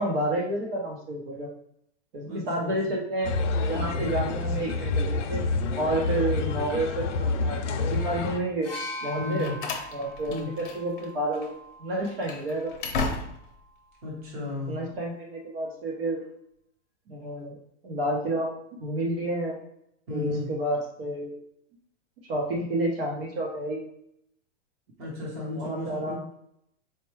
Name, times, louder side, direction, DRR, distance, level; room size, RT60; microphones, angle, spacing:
voice 1, 0.0-1.5 2.1-3.3 3.6-5.4 5.7-8.7 9.0-9.5 9.9-11.5 11.8-12.7 14.7-16.2 17.1-17.5 17.8-19.6 20.1-21.4 22.3-23.8 25.5-26.2, right 1 dB, 55° right, -1 dB, 0.8 m, -30 dB
voice 2, 2.2-2.7 3.9-4.2 6.4-6.6 9.2-9.6 10.3-10.5 14.0-14.8 20.1-20.5 25.0-26.2, left 3 dB, 25° right, -4 dB, 0.9 m, -34 dB
sound 1, 3.2-8.4, left 3 dB, 90° left, 0.6 m, -28 dB
sound 2, 8.6-12.4 13.5-13.6, equal, 10° left, 0.7 m, -41 dB
Slam, 9.0-11.1 11.3-11.5 12.0-13.6, left 3 dB, 45° left, 0.7 m, -34 dB
4.4 x 2.2 x 3.0 m, 0.74 s
supercardioid pair, 170°, 35 cm